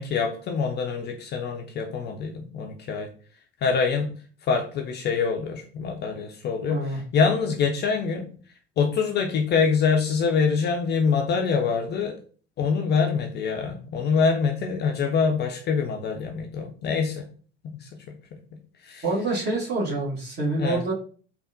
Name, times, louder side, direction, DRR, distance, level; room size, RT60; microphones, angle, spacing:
voice 1, 0.0-3.1 3.6-4.1 4.5-8.3 8.8-12.1 12.6-17.3 17.6-17.9 18.8-19.0 20.6-20.8, left 5 dB, 35° left, 3 dB, 0.4 m, -25 dB
voice 2, 6.7-7.0 19.0-20.9, right 2 dB, 35° right, -4 dB, 1.4 m, -26 dB
3.4 x 2.2 x 2.6 m, 0.42 s
figure-of-eight pair, 60°, 31 cm